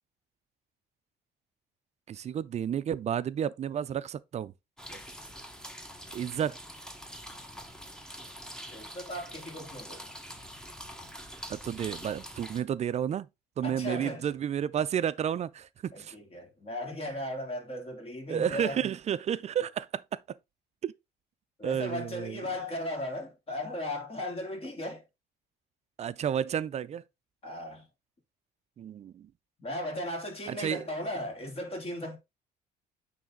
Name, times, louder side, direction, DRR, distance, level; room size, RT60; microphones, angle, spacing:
voice 1, 2.1-4.5 6.1-6.6 11.5-13.3 13.6-16.1 18.3-20.0 20.8-20.9 21.6-22.4 26.0-27.0 28.8-29.3 30.5-30.8, right 9 dB, 40° right, 0.4 m, -31 dB
sound 1, 4.8-12.6, equal, 5° left, 1.1 m, -45 dB
voice 2, 4.9-5.3 8.7-10.2 13.6-14.3 15.9-18.9 21.6-25.0 27.4-27.9 29.6-32.2, left 1 dB, 35° left, 3.2 m, -37 dB
9.1 x 3.4 x 3.7 m
cardioid pair, 110°, 17 cm